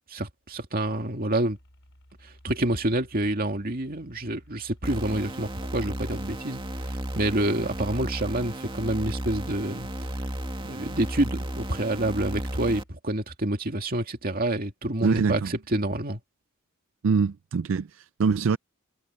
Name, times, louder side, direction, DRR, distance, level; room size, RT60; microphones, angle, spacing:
voice 1, 0.1-1.6 2.2-6.6 6.8-9.9 10.6-16.2, right 1 dB, 45° right, 2.3 m, -28 dB
sound 1, 1.5-13.0, equal, 65° left, 7.4 m, -56 dB
sound 2, 4.8-12.8, right 1 dB, 25° right, 2.3 m, -34 dB
voice 2, 15.0-15.5 17.0-18.6, right 5 dB, 70° right, 0.4 m, -24 dB
head